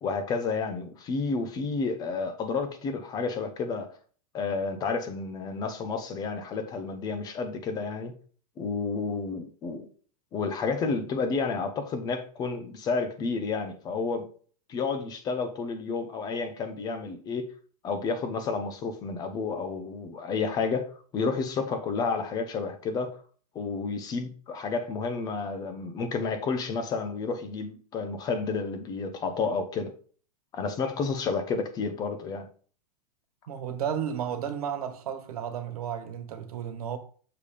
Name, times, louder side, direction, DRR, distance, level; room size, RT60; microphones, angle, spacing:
voice 1, 0.0-3.9 4.3-8.1 8.6-9.9 10.3-14.3 14.7-17.5 17.8-23.2 23.5-29.9 30.5-32.5, left 4 dB, 20° left, 0.7 m, -31 dB
voice 2, 33.5-37.0, right 8 dB, 75° right, 1.4 m, -33 dB
6.7 x 3.5 x 5.0 m
supercardioid pair, 155°, 19 cm